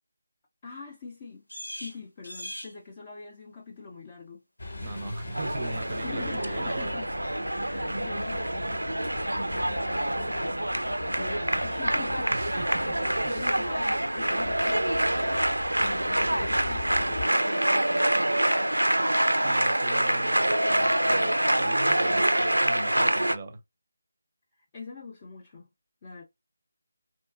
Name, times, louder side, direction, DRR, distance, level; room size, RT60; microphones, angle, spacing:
voice 1, 0.6-1.5 1.8-4.4 6.0-7.1 7.6-8.8 9.5-10.8 11.2-15.5 15.8-18.1 22.2-22.3 24.5-25.7 26.0-26.2, left 4 dB, 25° left, 0.4 m, -43 dB
sound 1, 1.0-20.8, equal, 85° left, 1.0 m, -52 dB
sound 2, 4.6-17.3, left 2 dB, 60° left, 0.8 m, -40 dB
voice 2, 4.8-7.0 12.3-12.6 13.2-13.5 16.0-16.1 19.4-23.6, right 2 dB, 30° right, 0.5 m, -39 dB
sound 3, 5.3-23.4, right 1 dB, 85° right, 0.3 m, -26 dB
2.6 x 2.2 x 2.3 m
figure-of-eight pair, 160°, 0 cm